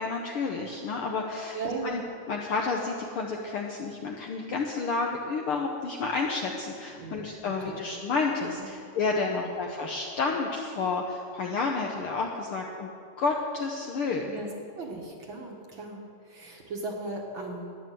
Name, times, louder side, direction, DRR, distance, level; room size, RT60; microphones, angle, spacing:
voice 1, 0.0-1.6 1.8-2.0 2.3-12.9 13.2-14.3, left 4 dB, 70° left, 1 dB, 1.4 m, -30 dB
voice 2, 1.5-2.0 6.9-7.8 8.6-8.7 9.3-9.6 14.2-14.5 14.8-17.8, right 3 dB, 50° right, 0 dB, 1.7 m, -37 dB
12.0 x 9.9 x 7.6 m, 2.5 s
omnidirectional pair, 3.4 m